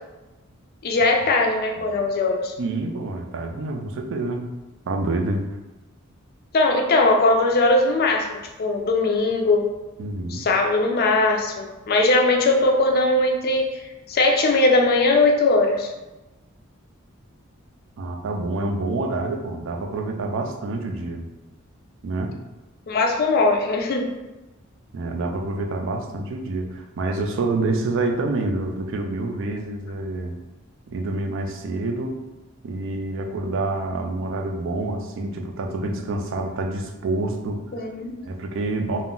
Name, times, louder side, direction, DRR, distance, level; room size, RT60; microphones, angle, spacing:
voice 1, 0.8-2.5 6.5-8.3 8.6-9.7 10.3-13.7 14.1-15.9 22.9-24.1 37.7-38.2, left 2 dB, 50° left, 2 dB, 0.4 m, -20 dB
voice 2, 2.6-4.5 4.9-5.4 10.0-10.4 18.0-21.3 22.0-22.4 24.9-30.4 30.9-32.2 32.6-37.6 38.2-39.0, right 2 dB, 65° right, 4 dB, 0.4 m, -27 dB
2.3 x 2.0 x 3.6 m, 1.1 s
head